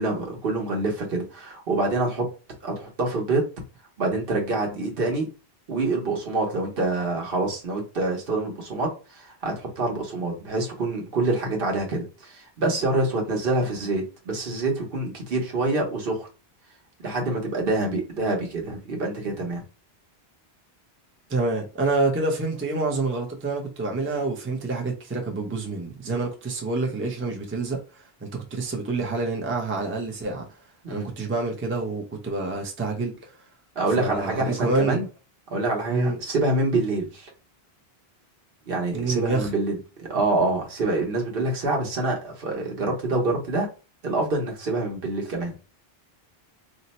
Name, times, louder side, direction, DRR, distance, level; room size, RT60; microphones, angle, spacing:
voice 1, 0.0-2.3 2.6-3.5 4.0-5.3 5.7-16.3 17.0-19.6 30.8-31.1 33.8-35.1 35.5-37.3 38.7-43.7 44.0-45.5, right 2 dB, 65° right, 1.1 m, -26 dB
voice 2, 21.3-30.5 30.9-33.3 34.0-35.0 35.9-36.2 38.9-39.5, right 3 dB, 15° right, 0.5 m, -27 dB
2.7 x 2.1 x 4.0 m
omnidirectional pair, 1.0 m